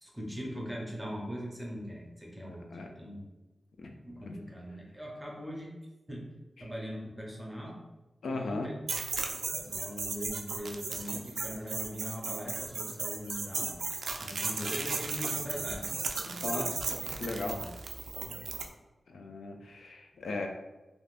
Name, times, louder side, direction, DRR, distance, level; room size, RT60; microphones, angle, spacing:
voice 1, 0.0-3.2 4.0-5.7 6.1-6.2 6.6-7.8 8.3-8.7 9.6-13.7 14.2-15.9 16.2-16.7 17.2-17.7 18.2-18.4, equal, 5° right, -2 dB, 0.6 m, -41 dB
voice 2, 2.5-2.9 3.8-3.9 4.3-4.4 6.6-6.7 8.2-8.7 14.4-14.7 16.4-16.7 17.2-17.6 19.1-20.5, left 3 dB, 80° left, 3 dB, 0.3 m, -37 dB
sound 1, 8.9-18.7, right 4 dB, 80° right, 0.3 m, -35 dB
3.4 x 2.6 x 2.4 m, 1.1 s
wide cardioid pair, 130°, 0 cm